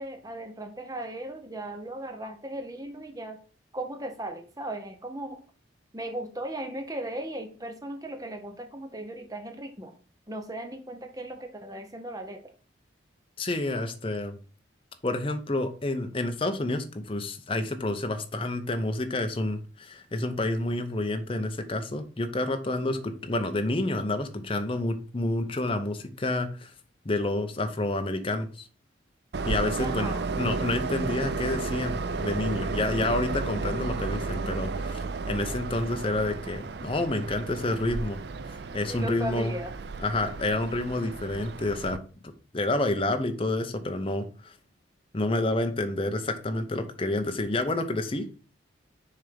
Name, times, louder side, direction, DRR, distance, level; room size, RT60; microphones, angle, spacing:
voice 1, 0.0-3.4 3.7-5.4 5.9-9.9 10.3-12.5 29.8-30.3 32.8-32.9 38.8-39.8, right 1 dB, 20° right, 6 dB, 0.8 m, -37 dB
voice 2, 13.4-14.4 15.0-26.7 27.0-28.7 29.4-38.2 38.5-39.5 40.0-42.0 42.5-44.5 45.1-48.3, left 2 dB, 25° left, 6 dB, 0.7 m, -29 dB
Train, 29.3-42.0, right 4 dB, 55° right, 0.4 m, -33 dB
6.6 x 3.5 x 5.2 m, 0.37 s
head